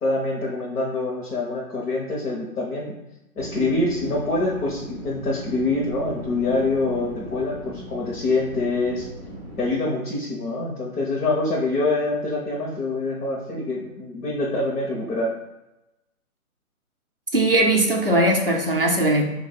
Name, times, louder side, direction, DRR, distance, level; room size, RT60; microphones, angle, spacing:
voice 1, 0.0-2.9 3.4-9.1 9.6-15.3, left 2 dB, 90° left, -4 dB, 1.1 m, -25 dB
sound 1, 3.4-9.7, equal, 15° right, 1.2 m, -39 dB
voice 2, 17.3-19.2, right 1 dB, 40° right, -1 dB, 0.4 m, -19 dB
3.3 x 2.6 x 4.0 m, 0.94 s
hypercardioid pair, 180°, 45 cm